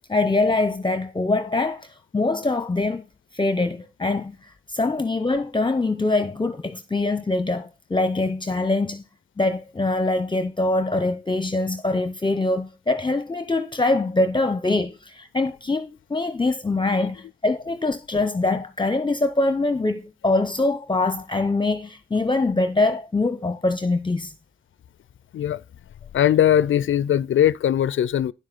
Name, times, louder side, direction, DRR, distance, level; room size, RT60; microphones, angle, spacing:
voice 1, 0.1-3.1 3.3-9.0 9.4-24.3, left 2 dB, 25° left, 0.8 m, -23 dB
voice 2, 26.1-28.3, left 10 dB, 85° left, 0.4 m, -20 dB
10.5 x 7.9 x 4.0 m
cardioid pair, 60°, 20 cm